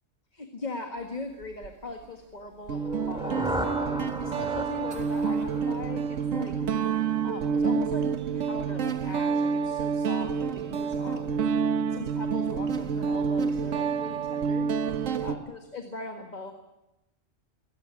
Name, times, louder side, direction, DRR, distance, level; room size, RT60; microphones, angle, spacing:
voice 1, 0.3-6.5 7.2-11.5 11.9-14.7 15.2-16.5, left 2 dB, 35° left, 4 dB, 1.8 m, -40 dB
Guitar, 1.4-1.7 2.7-15.3, right 6 dB, 75° right, 1.4 m, -28 dB
sound 1, 2.8-6.7, equal, 5° right, 2.4 m, -36 dB
22.5 x 17.5 x 9.7 m, 0.97 s
omnidirectional pair, 1.3 m